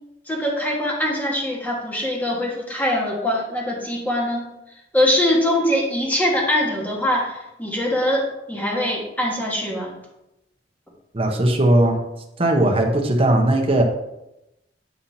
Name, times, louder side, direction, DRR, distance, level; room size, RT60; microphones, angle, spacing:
voice 1, 0.3-4.5 4.9-9.9, left 1 dB, 10° left, -3 dB, 1.6 m, -22 dB
voice 2, 11.1-12.0 12.4-13.8, right 1 dB, 35° right, 2 dB, 1.1 m, -18 dB
9.4 x 5.7 x 2.8 m, 0.90 s
head